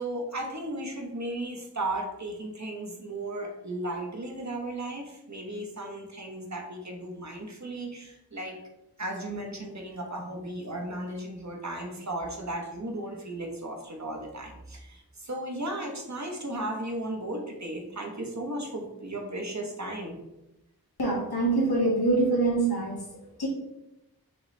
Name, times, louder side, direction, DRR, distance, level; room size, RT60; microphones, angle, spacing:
voice 1, 0.0-8.6 9.0-20.1, right 1 dB, 50° right, 1 dB, 1.0 m, -35 dB
voice 2, 21.0-23.0 23.4-23.5, right 2 dB, 90° left, -3 dB, 1.4 m, -24 dB
5.4 x 2.9 x 3.3 m, 0.92 s
wide cardioid pair, 55°, 37 cm